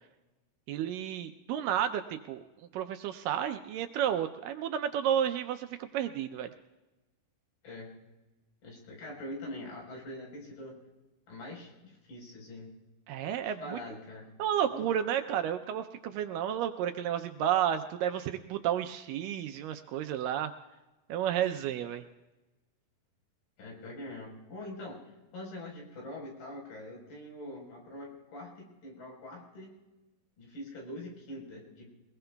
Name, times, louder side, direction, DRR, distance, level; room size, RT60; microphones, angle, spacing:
voice 1, 0.7-2.4 2.7-6.5 13.1-13.8 14.4-20.5 21.1-22.0, right 10 dB, 80° right, 8 dB, 2.1 m, -31 dB
voice 2, 8.6-10.7 11.3-12.7 13.4-14.3 14.7-14.8 23.6-25.0 25.3-29.7 30.4-31.9, left 1 dB, 75° left, -2 dB, 6.2 m, -44 dB
23.0 x 20.5 x 2.3 m, 1.1 s
omnidirectional pair, 4.2 m